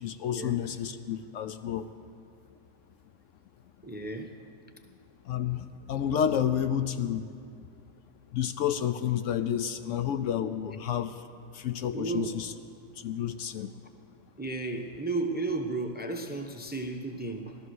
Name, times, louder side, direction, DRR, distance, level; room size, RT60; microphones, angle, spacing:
voice 1, 0.0-1.9 5.2-7.2 8.3-11.1 11.5-12.5 13.0-13.7, left 9 dB, 70° left, 10 dB, 0.9 m, -30 dB
voice 2, 3.8-4.3 10.7-10.8 11.9-12.3 14.4-17.6, right 3 dB, 10° right, 5 dB, 0.6 m, -33 dB
16.5 x 12.5 x 6.4 m, 2.3 s
omnidirectional pair, 1.4 m